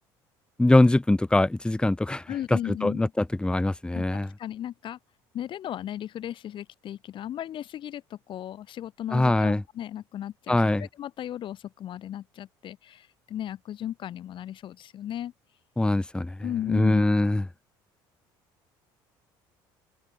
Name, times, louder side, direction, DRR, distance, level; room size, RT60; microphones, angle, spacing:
voice 1, 0.6-2.2 2.5-4.3 9.1-9.6 10.5-10.9 15.8-16.3 16.7-17.4, left 2 dB, 10° left, 3.7 m, -22 dB
voice 2, 2.3-3.1 3.9-5.0 5.3-15.3 16.4-17.1, left 11 dB, 55° left, 5.1 m, -36 dB
open air
supercardioid pair, 90°, 10 cm